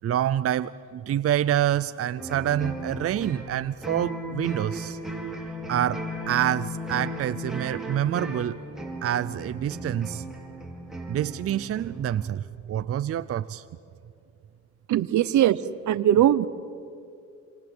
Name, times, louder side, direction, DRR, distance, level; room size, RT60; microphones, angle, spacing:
voice 1, 0.0-5.0 5.7-8.6 9.0-10.2 11.1-13.6, right 11 dB, 50° right, 14 dB, 0.6 m, -27 dB
sound 1, 2.2-12.3, equal, ahead, 4.9 m, -36 dB
voice 2, 14.9-16.5, right 11 dB, 70° right, 16 dB, 1.0 m, -21 dB
26.5 x 26.5 x 7.9 m, 2.5 s
cardioid pair, 90°, 30 cm